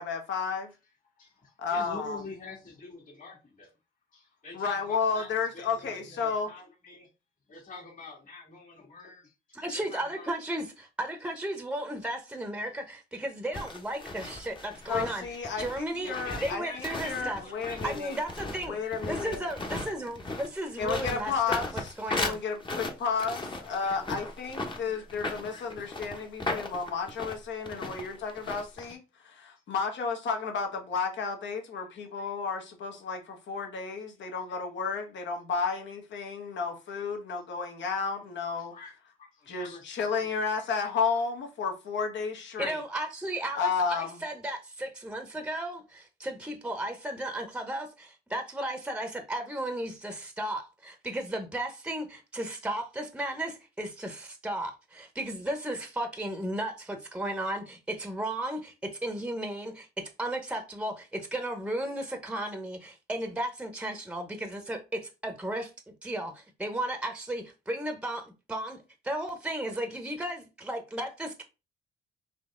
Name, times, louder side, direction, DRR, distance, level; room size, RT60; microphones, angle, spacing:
voice 1, 0.0-0.7 1.6-2.2 4.5-6.5 14.9-18.1 18.7-19.5 20.8-38.7 39.5-42.8 43.5-44.2, left 5 dB, 65° left, 1.2 m, -32 dB
voice 2, 0.8-3.7 4.1-7.1 7.5-10.3 11.2-11.3 16.0-18.3 23.7-24.1 24.6-25.7 31.8-31.9 34.0-34.1 36.5-36.7 38.6-41.0 41.8-41.9, left 3 dB, 40° left, 2.1 m, -47 dB
voice 3, 9.5-15.2 15.6-16.1 16.4-17.4 17.8-18.8 19.1-21.6 22.0-22.4 42.6-65.7 66.0-68.8 69.0-71.4, right 1 dB, 5° right, 0.8 m, -34 dB
sound 1, 13.5-28.9, left 2 dB, 25° left, 0.9 m, -37 dB
4.1 x 2.8 x 3.7 m
cardioid pair, 90°, 20 cm